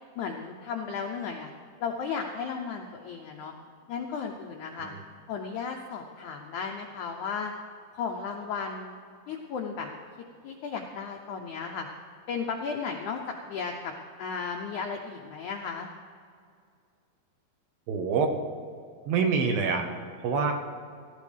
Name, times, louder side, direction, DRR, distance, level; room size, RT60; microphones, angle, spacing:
voice 1, 0.2-1.5 1.8-3.5 3.9-4.9 5.3-7.5 7.9-9.0 9.3-9.9 10.4-11.9 12.3-13.9 14.2-15.9, left 5 dB, 85° left, 2 dB, 1.7 m, -34 dB
voice 2, 17.9-18.4 19.1-19.8 20.2-20.5, right 5 dB, 75° right, 3 dB, 2.9 m, -26 dB
18.0 x 14.0 x 3.4 m, 2.3 s
omnidirectional pair, 4.4 m